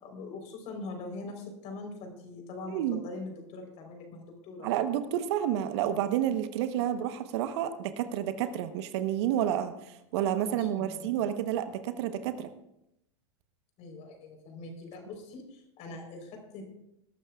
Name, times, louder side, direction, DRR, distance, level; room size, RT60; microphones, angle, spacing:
voice 1, 0.0-4.8 10.5-11.2 13.8-16.6, left 3 dB, 45° left, 3 dB, 4.0 m, -43 dB
voice 2, 2.7-3.1 4.6-12.5, right 10 dB, 60° right, 10 dB, 1.1 m, -30 dB
20.5 x 12.0 x 2.4 m, 0.83 s
hypercardioid pair, 100°, 16 cm